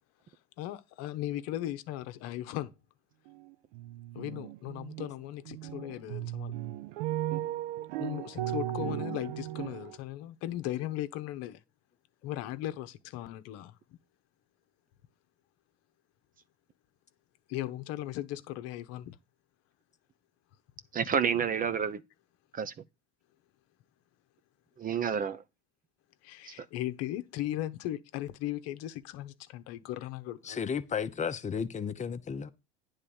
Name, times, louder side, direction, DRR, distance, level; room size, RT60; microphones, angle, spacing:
voice 1, 0.6-2.7 4.1-6.6 8.0-11.6 12.2-13.8 17.5-19.2 21.0-21.1 26.2-30.7, left 14 dB, 60° left, 0.9 m, -37 dB
sound 1, 3.3-3.5 3.7-5.1 5.5-10.0, right 14 dB, 70° right, 0.7 m, -36 dB
voice 2, 20.9-22.0 22.5-22.7 24.8-25.4 26.5-26.7, right 7 dB, 30° right, 0.7 m, -29 dB
voice 3, 30.4-32.5, left 6 dB, 25° left, 0.9 m, -33 dB
9.8 x 3.7 x 7.0 m
hypercardioid pair, 90°, 29 cm